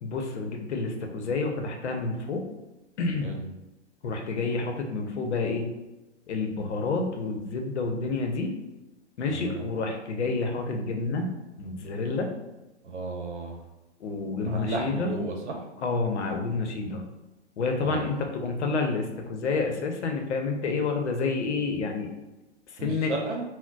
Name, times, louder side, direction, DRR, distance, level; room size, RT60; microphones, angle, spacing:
voice 1, 0.0-2.5 3.0-3.3 4.0-5.7 6.3-8.5 9.2-11.3 11.6-12.3 14.0-15.1 15.8-17.1 17.6-22.1 22.8-23.1, left 3 dB, 75° left, 3 dB, 0.7 m, -29 dB
voice 2, 9.3-9.6 12.8-13.5 14.4-15.6 17.8-18.2 22.8-23.4, right 2 dB, 90° right, 2 dB, 0.8 m, -33 dB
3.8 x 2.1 x 2.2 m, 1.0 s
hypercardioid pair, 125°, 34 cm